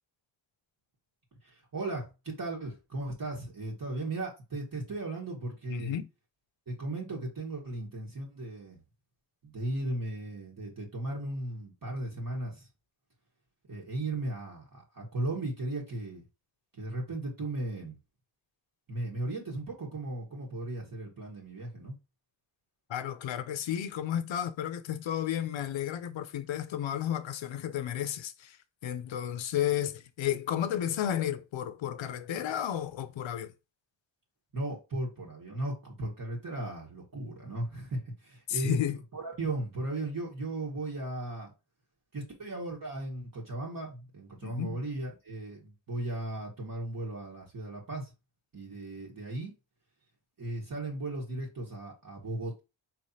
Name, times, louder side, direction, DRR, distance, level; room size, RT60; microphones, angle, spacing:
voice 1, 1.4-6.0 6.7-8.8 9.4-12.7 13.7-16.2 16.8-18.0 18.9-22.0 34.5-38.8 39.1-41.5 42.1-48.1 48.5-49.5 50.4-52.6, right 2 dB, 40° right, 1.4 m, -36 dB
voice 2, 5.7-6.1 22.9-28.6 28.8-33.5 38.5-39.0 44.4-44.8, left 10 dB, 65° left, 0.6 m, -32 dB
4.3 x 3.2 x 2.7 m
cardioid pair, 85°, 49 cm